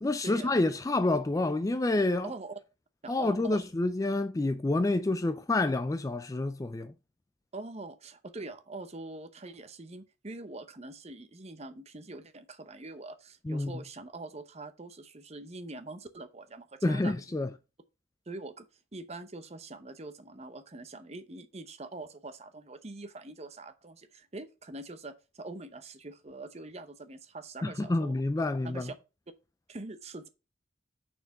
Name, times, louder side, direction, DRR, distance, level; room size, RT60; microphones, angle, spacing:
voice 1, 0.0-2.3 3.1-6.9 13.5-13.8 16.8-17.5 27.6-28.9, left 2 dB, 15° left, 0.3 m, -28 dB
voice 2, 2.2-2.6 3.0-3.6 7.5-17.4 18.3-18.7 18.9-28.1 28.6-28.9 29.7-30.3, right 2 dB, 35° right, 0.8 m, -44 dB
6.6 x 4.5 x 5.8 m
head